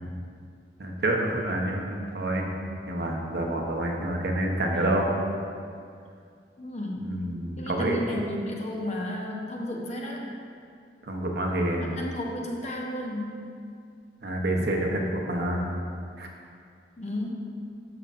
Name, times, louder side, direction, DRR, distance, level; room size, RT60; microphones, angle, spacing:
voice 1, 0.8-2.5 2.9-5.1 7.0-8.0 11.1-11.9 14.2-15.8 16.2-16.3, right 1 dB, 60° right, 0 dB, 0.9 m, -28 dB
voice 2, 6.6-7.2 7.6-10.2 11.8-13.4 17.0-17.5, left 1 dB, 35° left, -1 dB, 0.9 m, -33 dB
12.5 x 5.5 x 2.5 m, 2.3 s
head